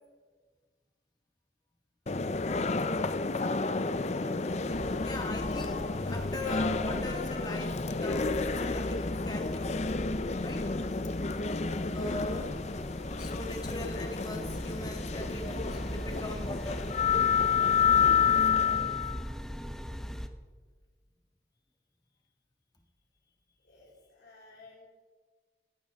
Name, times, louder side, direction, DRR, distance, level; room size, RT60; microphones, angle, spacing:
sound 1, 2.1-19.2, left 5 dB, 40° left, 0.5 m, -30 dB
voice 1, 4.6-9.8 10.4-10.7 11.9-12.7 13.2-16.9, left 1 dB, 25° left, 2 dB, 1.8 m, -41 dB
sound 2, 4.7-20.3, equal, 5° left, 0.8 m, -40 dB
voice 2, 23.6-24.9, left 3 dB, 75° left, -5 dB, 3.3 m, -55 dB
17.5 x 14.5 x 3.6 m, 1.5 s
head